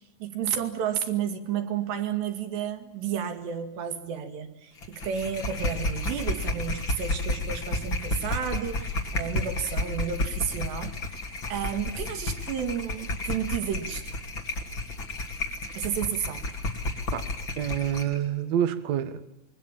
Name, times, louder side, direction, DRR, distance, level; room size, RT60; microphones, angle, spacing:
voice 1, 0.2-11.0 11.5-14.2 15.7-16.4, right 8 dB, 60° right, 8 dB, 4.1 m, -31 dB
sound 1, 4.8-18.2, left 2 dB, 30° left, 2.6 m, -32 dB
voice 2, 17.6-19.3, right 10 dB, 80° right, 9 dB, 1.5 m, -27 dB
26.5 x 23.0 x 7.4 m, 0.86 s
omnidirectional pair, 5.8 m